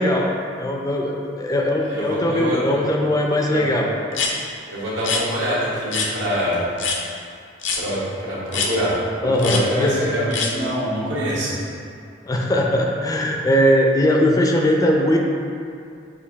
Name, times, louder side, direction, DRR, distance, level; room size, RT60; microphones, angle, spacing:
voice 1, 0.0-3.9 9.2-10.0 12.3-15.2, left 1 dB, 20° left, 0 dB, 0.3 m, -20 dB
voice 2, 1.8-2.8 3.5-3.7 4.7-6.6 7.7-8.9 9.2-11.5, equal, 85° right, -7 dB, 1.2 m, -25 dB
sound 1, 4.1-4.3 5.0-5.2 5.9-6.1 6.8-7.0 7.6-7.8 8.5-8.7 9.4-9.6 10.3-10.5, left 5 dB, 80° left, 0.5 m, -23 dB
6.5 x 2.5 x 2.8 m, 2.4 s
head